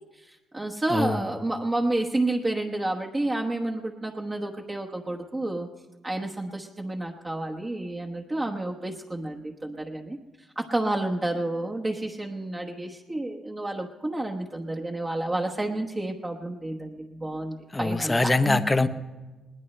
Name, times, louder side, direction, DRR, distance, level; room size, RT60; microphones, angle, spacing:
voice 1, 0.2-5.7 6.0-10.2 10.5-18.6, right 2 dB, 20° right, 0 dB, 1.2 m, -30 dB
voice 2, 0.9-1.3 17.7-18.9, left 2 dB, 15° left, 10 dB, 0.9 m, -23 dB
21.0 x 18.5 x 3.3 m, 1.2 s
cardioid pair, 90°, 0 cm